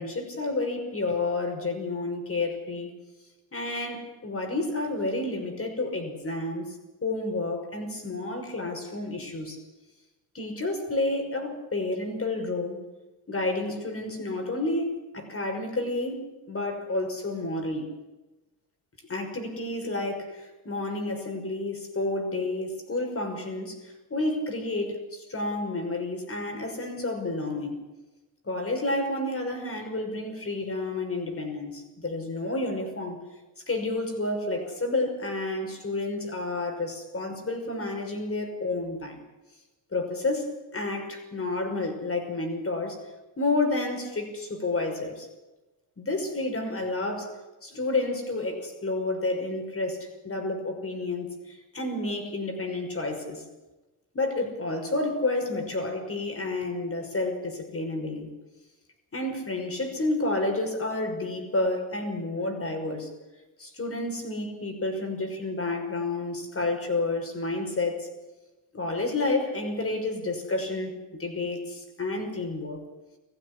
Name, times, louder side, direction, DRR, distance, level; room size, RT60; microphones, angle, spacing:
voice 1, 0.0-2.9 3.5-6.8 7.0-9.6 10.3-12.8 13.3-17.9 19.1-27.8 28.4-33.2 33.7-39.2 39.9-43.0 43.4-45.3 46.0-53.4 54.1-58.3 59.1-63.1 63.6-68.1 68.7-72.8, left 2 dB, 30° left, 4 dB, 5.8 m, -30 dB
20.0 x 15.0 x 9.9 m, 1.1 s
cardioid pair, 85°, 43 cm